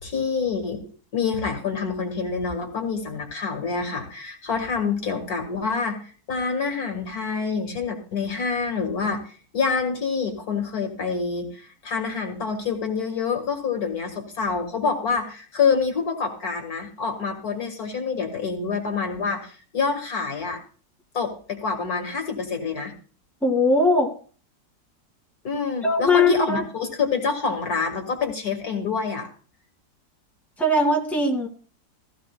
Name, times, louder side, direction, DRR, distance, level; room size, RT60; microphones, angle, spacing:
voice 1, 0.0-20.6 21.1-22.9 25.4-29.3, left 5 dB, 55° left, 4 dB, 2.1 m, -27 dB
voice 2, 23.4-24.1 25.8-26.6 30.6-31.5, left 2 dB, ahead, 1 dB, 1.7 m, -20 dB
15.5 x 14.5 x 2.2 m, 0.41 s
omnidirectional pair, 2.0 m